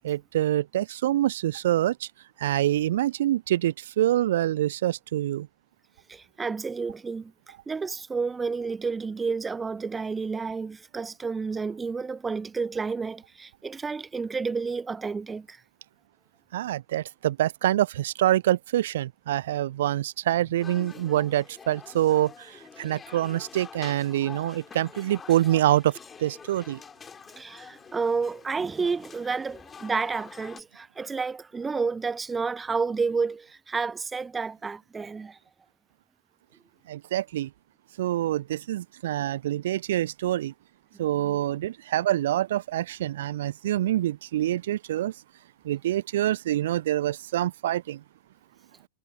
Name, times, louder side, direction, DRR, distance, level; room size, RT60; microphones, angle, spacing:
voice 1, 0.0-1.9 2.4-5.5 16.5-22.3 22.8-25.9 26.2-26.8 36.9-37.5 38.0-40.5 41.0-45.1 45.7-48.0, right 13 dB, 60° right, 0.9 m, -25 dB
voice 2, 6.1-7.3 7.7-15.6 27.4-35.4 41.2-41.4, right 4 dB, 15° right, 0.8 m, -30 dB
sound 1, 20.6-30.6, left 6 dB, 20° left, 4.7 m, -47 dB
figure-of-eight pair, 90°, 0 cm